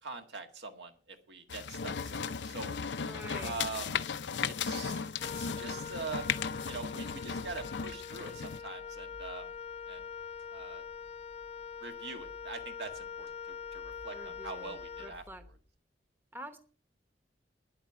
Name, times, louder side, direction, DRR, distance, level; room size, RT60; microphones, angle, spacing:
voice 1, 0.0-2.7 3.4-3.9 4.4-5.0 5.4-6.3 6.7-9.5 9.9-10.1 10.5-10.8 11.8-15.2, right 3 dB, 70° right, 5 dB, 1.9 m, -43 dB
sound 1, 1.5-8.6, left 6 dB, 85° left, 0.6 m, -36 dB
voice 2, 3.0-3.6 14.1-15.5 16.3-16.6, equal, 15° right, 8 dB, 1.0 m, -47 dB
Wind instrument woodwind instrument, 5.2-15.6, left 6 dB, 35° left, 0.7 m, -44 dB
10.0 x 8.8 x 7.5 m, 0.41 s
head